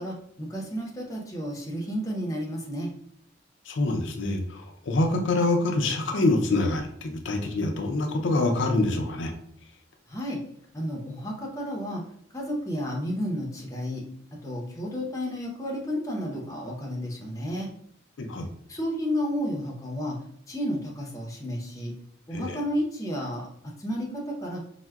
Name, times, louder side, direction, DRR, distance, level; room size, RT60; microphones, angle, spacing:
voice 1, 0.0-2.9 10.1-10.4 10.7-12.0 12.3-14.0 14.4-17.7 18.7-20.2 20.5-21.9 22.3-24.6, equal, 15° left, -2 dB, 0.6 m, -32 dB
voice 2, 3.7-9.3 18.2-18.5 22.3-22.6, left 2 dB, 70° left, 4 dB, 0.4 m, -26 dB
4.4 x 2.1 x 2.3 m, 0.66 s
head